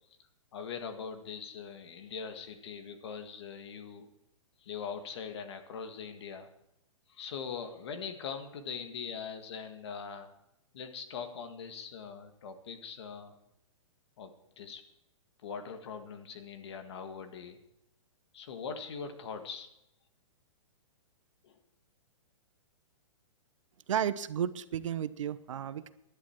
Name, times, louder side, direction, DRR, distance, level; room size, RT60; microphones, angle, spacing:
voice 1, 0.5-4.1 4.6-6.5 7.1-10.3 10.7-13.3 14.2-14.8 15.4-17.6 18.3-19.7 21.4-21.6, left 6 dB, 55° left, 7 dB, 1.8 m, -42 dB
voice 2, 23.9-25.9, right 9 dB, 75° right, 14 dB, 0.8 m, -33 dB
16.0 x 11.5 x 4.5 m, 0.82 s
hypercardioid pair, 165°, 16 cm